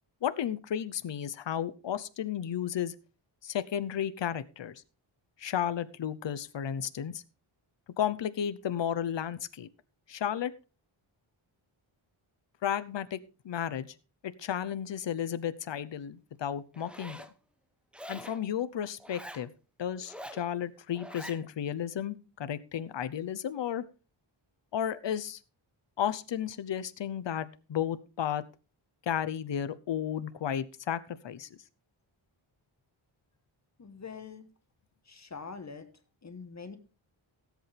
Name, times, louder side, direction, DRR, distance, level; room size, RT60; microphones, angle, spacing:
voice 1, 0.2-2.9 3.4-4.8 5.4-7.2 8.0-9.7 10.1-10.5 12.6-13.2 13.4-13.9 14.2-17.2 18.1-19.5 19.8-23.8 24.7-25.4 26.0-28.4 29.1-31.5, left 9 dB, 65° left, 14 dB, 0.9 m, -33 dB
Zipper (clothing), 16.7-17.3 17.9-18.4 19.0-19.4 20.0-20.5 20.9-21.4, equal, ahead, 0.9 m, -45 dB
voice 2, 33.8-34.5 35.1-35.9 36.2-36.8, left 5 dB, 35° left, 9 dB, 1.3 m, -44 dB
17.5 x 8.3 x 3.4 m, 0.33 s
wide cardioid pair, 170°, 48 cm